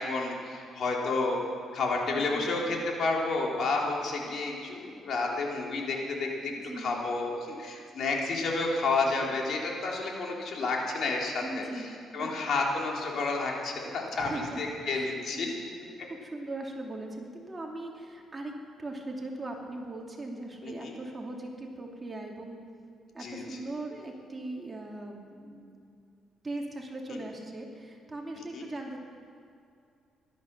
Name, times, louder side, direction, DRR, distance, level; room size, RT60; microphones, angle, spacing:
voice 1, 0.0-1.4 1.7-11.9 12.1-15.5 20.6-20.7 23.2-23.4 27.1-27.2 28.5-28.6, left 3 dB, 60° left, -1 dB, 3.3 m, -30 dB
voice 2, 2.1-2.5 6.4-7.0 11.4-12.3 14.1-14.6 14.9-15.6 16.2-18.5 18.8-22.6 23.1-25.8 26.4-29.0, right 2 dB, 20° right, 0 dB, 2.8 m, -39 dB
17.0 x 12.5 x 6.8 m, 2.4 s
cardioid pair, 90°, 0 cm